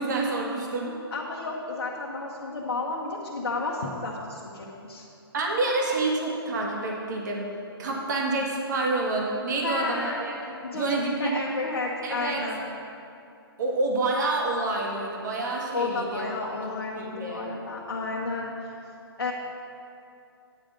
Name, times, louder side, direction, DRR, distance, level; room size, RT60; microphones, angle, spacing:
voice 1, 0.0-0.9 5.3-7.4 7.8-10.4 10.7-11.4 12.0-12.4 13.6-16.2 16.9-17.4, right 2 dB, 45° right, -1 dB, 1.5 m, -28 dB
voice 2, 1.1-5.1 9.6-10.2 10.6-12.6 15.7-18.5 19.2-19.3, left 3 dB, 60° left, -4 dB, 1.2 m, -32 dB
9.6 x 5.0 x 7.3 m, 2.6 s
figure-of-eight pair, 135°, 13 cm